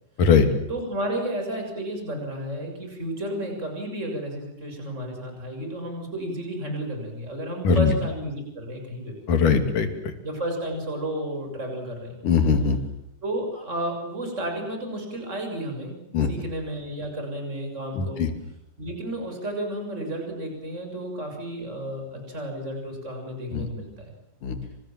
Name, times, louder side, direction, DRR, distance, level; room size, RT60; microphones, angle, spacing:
voice 1, 0.7-9.2 10.2-12.2 13.2-16.0 16.3-18.3 18.8-24.1, right 1 dB, 20° right, 3 dB, 7.3 m, -32 dB
voice 2, 9.3-9.9 12.2-12.8 16.1-16.3 17.9-18.3 23.5-23.7 24.4-24.6, left 6 dB, 80° left, 8 dB, 4.3 m, -20 dB
29.0 x 26.0 x 7.7 m, 0.79 s
omnidirectional pair, 3.7 m